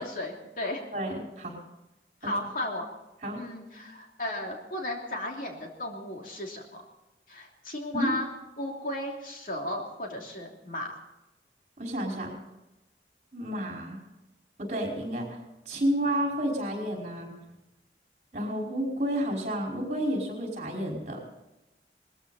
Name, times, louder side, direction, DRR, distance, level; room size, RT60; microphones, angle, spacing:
voice 1, 0.0-0.8 2.2-2.8 3.4-6.8 7.3-8.3 8.6-10.9, left 1 dB, 50° left, 1 dB, 3.0 m, -35 dB
voice 2, 0.9-1.6 2.2-2.3 3.2-3.4 7.9-8.1 11.8-12.3 13.3-14.0 14.6-15.4 15.7-17.3 18.3-21.2, equal, 40° right, -1 dB, 5.2 m, -30 dB
20.5 x 14.5 x 4.3 m, 0.98 s
head